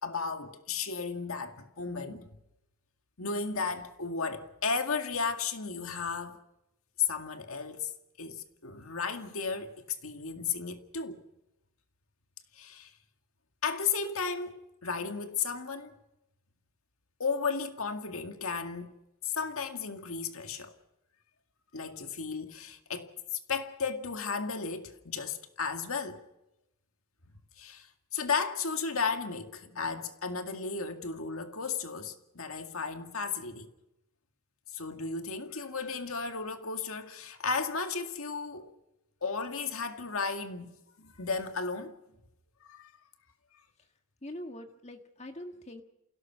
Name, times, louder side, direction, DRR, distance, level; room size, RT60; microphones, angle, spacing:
voice 1, 0.0-2.4 3.2-6.4 7.0-7.9 8.2-11.2 12.5-12.9 13.6-15.9 17.2-18.9 19.2-20.8 21.7-26.2 27.6-33.7 34.7-38.7 39.2-42.0 42.6-42.9, left 5 dB, 70° left, 2.1 m, -34 dB
voice 2, 44.2-45.8, left 1 dB, 30° left, 1.6 m, -43 dB
28.0 x 17.0 x 6.0 m
head